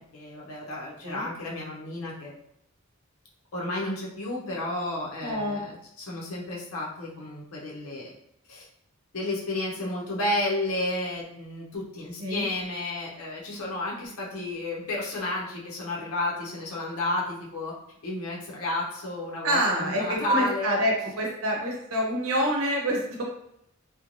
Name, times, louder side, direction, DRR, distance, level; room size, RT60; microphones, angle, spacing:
voice 1, 0.1-2.3 3.5-8.1 8.5-8.7 9.1-17.7 18.0-20.8, left 1 dB, 85° left, -4 dB, 0.7 m, -32 dB
voice 2, 5.2-5.6 12.2-12.4 19.4-23.2, equal, 70° right, -1 dB, 0.8 m, -27 dB
3.0 x 2.2 x 2.5 m, 0.75 s
head